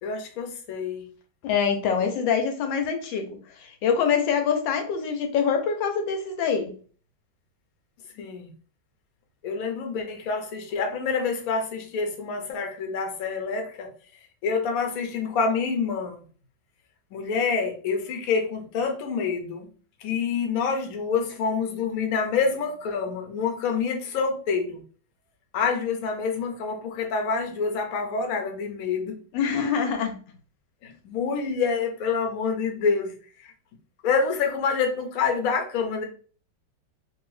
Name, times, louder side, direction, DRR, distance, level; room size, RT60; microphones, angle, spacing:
voice 1, 0.0-1.1 8.2-8.5 9.4-13.9 14.4-16.2 17.1-19.7 20.0-24.8 25.5-29.2 30.8-33.1 33.4-33.5 34.0-36.0, left 5 dB, 65° left, 0.9 m, -27 dB
voice 2, 1.4-6.7 29.3-30.1, left 6 dB, 80° left, 1.3 m, -25 dB
2.7 x 2.6 x 3.1 m
omnidirectional pair, 2.1 m